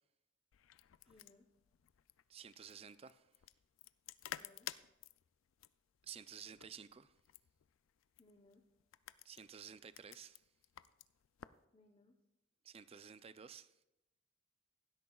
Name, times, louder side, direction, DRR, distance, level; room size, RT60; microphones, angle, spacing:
sound 1, 0.5-11.6, left 11 dB, 90° left, 0.4 m, -54 dB
voice 1, 1.1-1.5 4.3-4.7 8.2-8.6 11.7-12.2, left 2 dB, 30° left, 0.8 m, -66 dB
voice 2, 2.3-3.3 6.0-7.1 9.2-10.4 12.6-13.7, right 7 dB, 30° right, 0.4 m, -53 dB
16.0 x 12.5 x 2.3 m
head